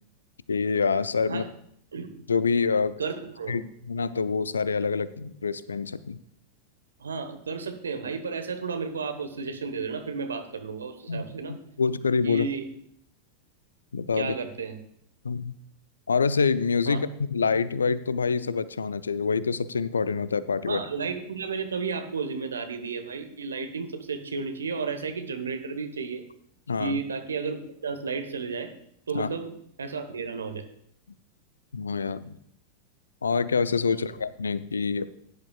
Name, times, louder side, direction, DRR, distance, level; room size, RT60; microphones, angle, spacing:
voice 1, 0.5-1.5 2.3-3.0 3.5-3.6 3.9-6.2 11.1-12.5 13.9-14.4 15.2-15.5 16.1-20.8 26.7-27.0 29.1-29.3 31.7-32.4 33.2-35.1, left 5 dB, 80° left, 16 dB, 0.5 m, -26 dB
voice 2, 1.9-2.2 3.0-3.6 7.0-11.6 12.2-12.7 14.2-14.8 16.9-17.0 20.7-26.2 26.8-27.6 27.8-28.7 29.1-30.7 33.9-34.1, right 5 dB, 75° right, 8 dB, 1.1 m, -33 dB
16.5 x 10.0 x 2.4 m, 0.70 s
figure-of-eight pair, 90°, 0 cm